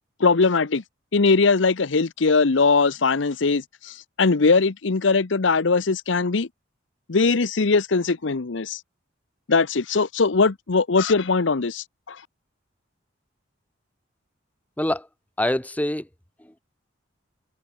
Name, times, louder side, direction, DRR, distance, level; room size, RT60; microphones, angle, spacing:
voice 1, 0.2-0.8 1.1-6.5 7.1-8.8 9.5-12.2, left 4 dB, 75° left, 0.8 m, -20 dB
voice 2, 14.8-15.1 15.4-16.1 16.4-16.6, left 1 dB, 10° left, 0.9 m, -25 dB
head